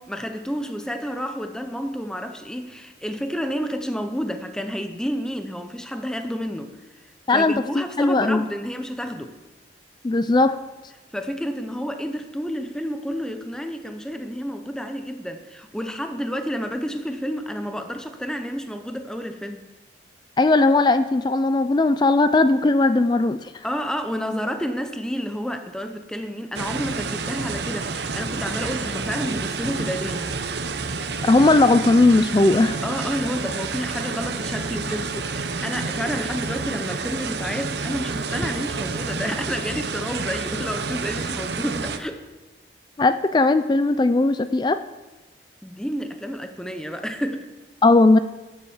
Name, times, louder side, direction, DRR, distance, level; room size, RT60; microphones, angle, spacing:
voice 1, 0.1-6.7 7.3-9.3 11.1-19.7 23.6-30.3 32.8-42.2 45.6-47.5, equal, 5° left, 7 dB, 0.7 m, -30 dB
voice 2, 7.3-8.4 10.0-10.6 20.4-23.6 31.2-32.8 43.0-44.8 47.8-48.2, left 2 dB, 25° left, 12 dB, 0.3 m, -18 dB
sound 1, 26.5-42.0, right 4 dB, 65° right, 0.9 m, -29 dB
12.0 x 7.4 x 7.1 m, 1.1 s
head